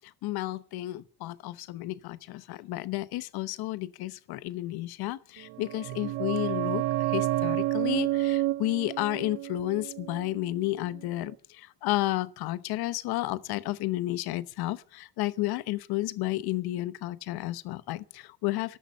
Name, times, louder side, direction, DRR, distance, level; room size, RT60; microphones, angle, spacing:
voice 1, 0.2-6.8 7.1-18.8, left 17 dB, 70° left, 1.0 m, -32 dB
sound 1, 5.5-10.9 11.1-11.2, right 16 dB, 70° right, 0.9 m, -30 dB
13.5 x 13.0 x 6.5 m
cardioid pair, 160°, 38 cm